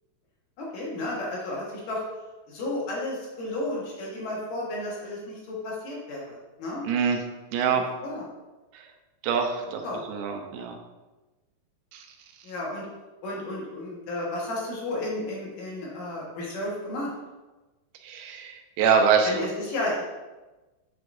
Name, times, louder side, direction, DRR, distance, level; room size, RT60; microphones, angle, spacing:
voice 1, 0.6-2.0 2.5-6.8 7.7-8.2 9.8-10.0 12.4-12.9 13.2-17.1 19.2-20.0, left 1 dB, 65° left, -4 dB, 2.8 m, -32 dB
voice 2, 6.8-7.2 7.5-7.8 9.2-9.8 10.1-10.8 11.9-12.0 18.0-19.5, right 6 dB, 85° right, 4 dB, 2.7 m, -24 dB
6.9 x 6.3 x 2.6 m, 1.1 s
omnidirectional pair, 4.4 m